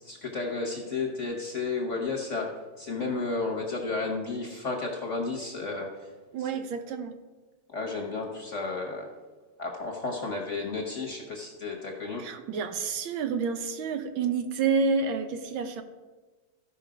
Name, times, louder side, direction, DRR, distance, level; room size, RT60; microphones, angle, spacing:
voice 1, 0.0-2.5 2.8-6.1 6.4-6.5 7.7-9.1 9.6-12.2, left 3 dB, 40° left, 1 dB, 1.2 m, -32 dB
voice 2, 6.3-7.1 12.2-15.8, right 5 dB, 75° right, 8 dB, 1.4 m, -29 dB
14.5 x 5.5 x 4.9 m, 1.3 s
omnidirectional pair, 2.4 m